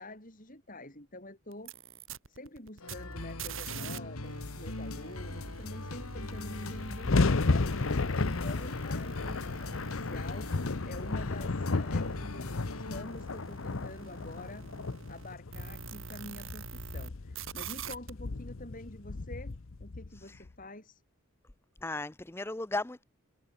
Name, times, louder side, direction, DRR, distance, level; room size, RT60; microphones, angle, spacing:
voice 1, 0.0-1.7 2.3-7.7 8.2-10.5 10.8-14.7 15.1-21.0, left 1 dB, 40° left, 6.8 m, -47 dB
sound 1, 1.5-17.1 17.3-18.1, right 6 dB, 65° right, 3.2 m, -46 dB
sound 2, 2.8-13.0, left 2 dB, 85° left, 2.5 m, -41 dB
sound 3, 5.9-6.0 6.2-20.5, left 3 dB, 65° left, 0.8 m, -33 dB
voice 2, 21.8-23.0, left 2 dB, 10° left, 0.5 m, -36 dB
head